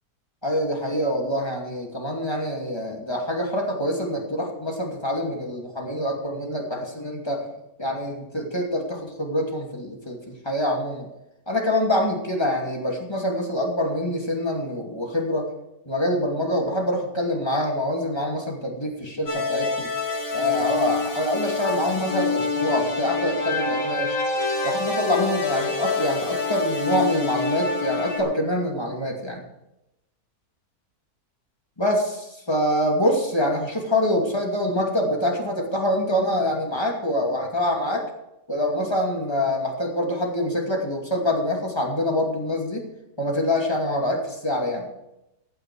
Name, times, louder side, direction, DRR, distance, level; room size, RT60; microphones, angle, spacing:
voice 1, 0.4-7.5 7.8-11.1 11.5-15.5 15.9-19.9 20.3-24.2 24.6-29.4 31.8-38.1 38.5-42.9 43.2-44.9, left 1 dB, 15° left, 0 dB, 2.5 m, -25 dB
sound 1, 19.3-28.2, left 3 dB, 60° left, 3.3 m, -27 dB
15.0 x 9.5 x 4.7 m, 0.88 s
omnidirectional pair, 1.6 m